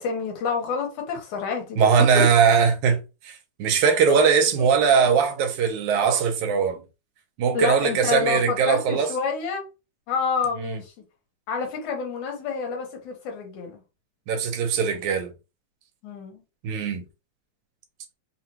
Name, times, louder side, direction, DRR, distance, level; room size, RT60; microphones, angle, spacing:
voice 1, 0.0-1.9 2.1-2.2 4.1-4.2 4.6-4.7 7.5-9.6 10.1-10.9 11.5-13.8 16.0-16.4, left 5 dB, 80° left, 2.5 m, -28 dB
voice 2, 1.8-6.8 7.4-9.1 10.7-10.8 14.3-15.3 16.6-17.0, right 6 dB, 75° right, 2.2 m, -20 dB
5.6 x 2.3 x 2.8 m
omnidirectional pair, 3.5 m